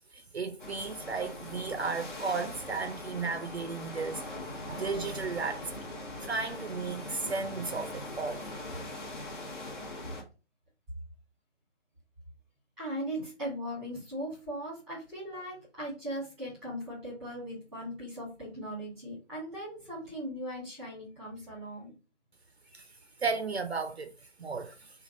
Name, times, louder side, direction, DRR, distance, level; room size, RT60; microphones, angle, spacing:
voice 1, 0.1-5.7 6.2-8.5 22.7-22.9 23.2-25.0, right 4 dB, 60° right, 0.5 m, -35 dB
sound 1, 0.6-10.2, left 1 dB, 40° left, 1.1 m, -41 dB
voice 2, 12.8-21.9 22.6-22.8, equal, ahead, 1.2 m, -39 dB
3.1 x 2.3 x 3.9 m
figure-of-eight pair, 155°, 36 cm